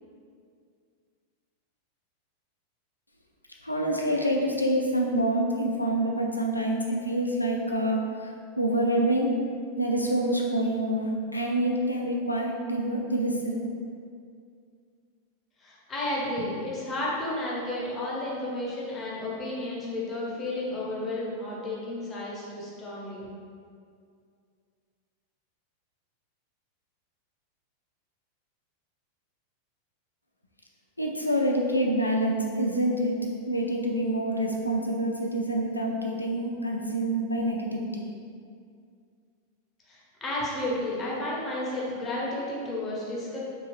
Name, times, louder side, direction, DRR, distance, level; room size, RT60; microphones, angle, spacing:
voice 1, 3.6-9.4 9.8-13.6 31.0-38.0, right 1 dB, 85° left, 0 dB, 0.3 m, -27 dB
voice 2, 15.6-23.2 39.9-43.4, left 1 dB, 20° left, -6 dB, 0.8 m, -32 dB
2.7 x 2.6 x 3.1 m, 2.3 s
figure-of-eight pair, 90°, 0 cm